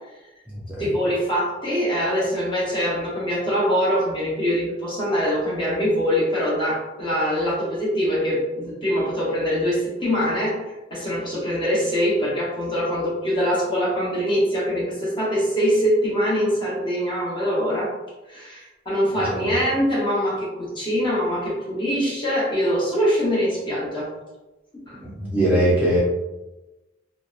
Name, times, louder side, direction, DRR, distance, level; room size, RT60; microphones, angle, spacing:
voice 1, 0.8-17.9 18.3-24.1 24.9-25.0, equal, 25° left, -6 dB, 0.8 m, -23 dB
voice 2, 25.0-26.0, right 1 dB, 10° right, -8 dB, 0.5 m, -21 dB
2.7 x 2.0 x 2.4 m, 1.1 s
head